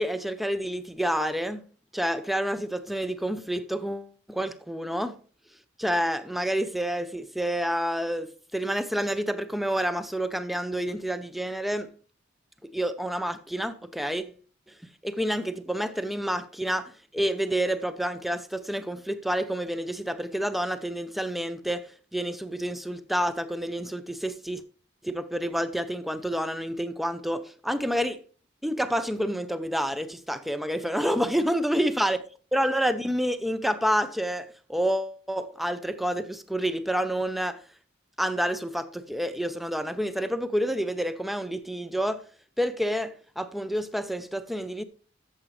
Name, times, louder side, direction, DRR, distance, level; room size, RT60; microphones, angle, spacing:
voice 1, 0.0-1.6 1.9-5.2 5.8-11.9 12.7-14.4 15.0-24.6 25.0-28.2 28.6-32.2 32.5-37.6 38.2-42.2 42.6-44.8, equal, ahead, 0.6 m, -28 dB
13.5 x 7.3 x 3.2 m
head